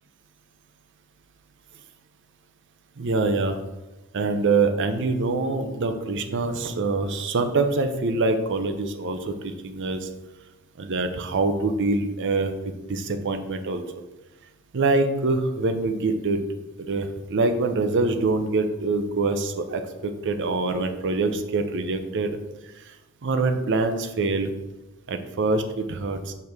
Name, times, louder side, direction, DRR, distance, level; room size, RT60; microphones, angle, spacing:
voice 1, 3.0-3.6 4.1-10.1 10.8-13.8 14.7-16.4 16.8-22.4 23.2-24.5 25.1-26.3, right 3 dB, 60° right, 8 dB, 0.6 m, -25 dB
6.3 x 4.6 x 3.5 m, 1.1 s
head